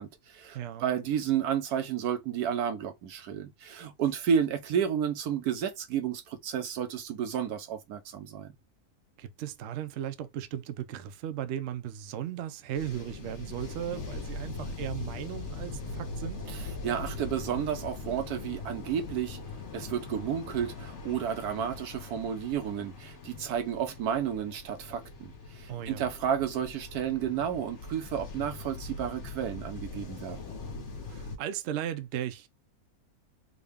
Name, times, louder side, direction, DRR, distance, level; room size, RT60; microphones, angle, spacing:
voice 1, 0.0-8.5 16.5-16.6 16.8-19.4 19.7-30.4, right 8 dB, 85° right, 1.3 m, -31 dB
voice 2, 0.5-0.9 9.2-16.4 25.7-26.1 31.1-32.5, right 10 dB, 65° right, 0.7 m, -36 dB
sound 1, 12.7-31.4, left 3 dB, 55° left, 1.2 m, -41 dB
3.7 x 2.2 x 3.5 m
omnidirectional pair, 1.6 m